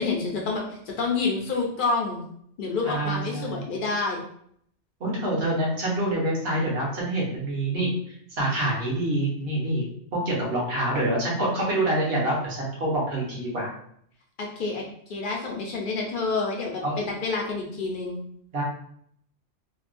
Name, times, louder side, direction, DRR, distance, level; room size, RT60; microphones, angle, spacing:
voice 1, 0.0-2.2 2.6-4.2 14.4-14.8 15.1-18.2, left 3 dB, 55° left, -1 dB, 0.6 m, -28 dB
voice 2, 2.8-3.6 5.0-7.9 8.3-9.9 10.1-13.7 16.8-17.0 18.5-18.6, right 1 dB, 55° right, -4 dB, 1.2 m, -26 dB
2.9 x 2.2 x 2.5 m, 0.66 s
omnidirectional pair, 1.2 m